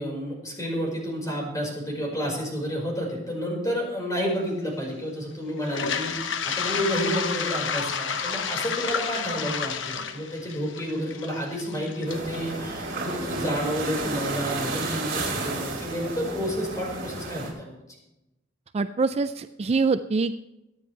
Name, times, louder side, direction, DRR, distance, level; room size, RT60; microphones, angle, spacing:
voice 1, 0.0-17.8, equal, 20° left, -2 dB, 5.0 m, -30 dB
Toilet flush, 5.6-13.5, left 6 dB, 75° left, 0.9 m, -31 dB
sound 1, 12.1-17.5, right 2 dB, 50° right, 4.7 m, -32 dB
voice 2, 18.7-20.4, right 4 dB, 35° right, 11 dB, 0.4 m, -24 dB
24.0 x 9.4 x 3.3 m, 0.95 s
head